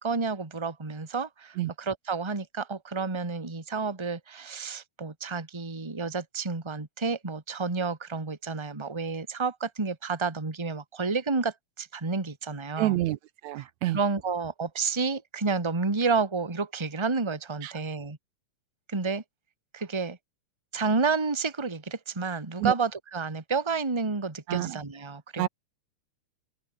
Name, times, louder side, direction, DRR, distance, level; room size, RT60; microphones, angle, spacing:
voice 1, 0.0-12.9 13.9-18.2 18.9-19.2 19.7-20.2 20.7-25.5, right 4 dB, 10° right, 1.6 m, -30 dB
voice 2, 12.8-14.0 17.6-17.7 22.6-22.7 24.5-24.8 25.4-25.5, right 16 dB, 80° right, 2.0 m, -28 dB
open air
omnidirectional pair, 3.4 m